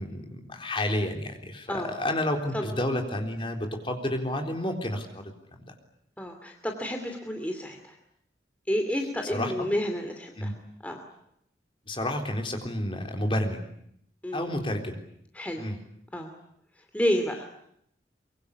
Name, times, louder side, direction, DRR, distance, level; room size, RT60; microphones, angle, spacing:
voice 1, 0.0-5.7 9.3-9.7 10.4-10.5 11.9-13.6 14.3-15.0 15.6-15.8, left 1 dB, 30° left, 4 dB, 3.8 m, -30 dB
voice 2, 6.2-7.9 8.7-10.5 10.8-11.0 14.2-14.5 15.3-15.7 16.1-16.3 16.9-17.4, equal, 10° left, 4 dB, 2.7 m, -30 dB
24.0 x 24.0 x 9.9 m, 0.72 s
head